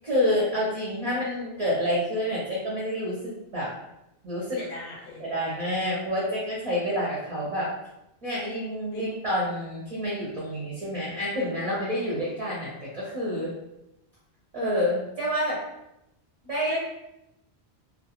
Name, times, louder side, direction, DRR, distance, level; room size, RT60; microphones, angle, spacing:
voice 1, 0.0-3.7 4.2-4.6 5.2-7.7 8.2-13.5 14.5-15.6 16.4-16.8, equal, 40° right, -7 dB, 0.7 m, -28 dB
voice 2, 4.5-5.2 8.9-9.0 16.7-16.8, left 3 dB, 60° left, -2 dB, 0.8 m, -39 dB
2.3 x 2.0 x 2.9 m, 0.87 s
omnidirectional pair, 1.1 m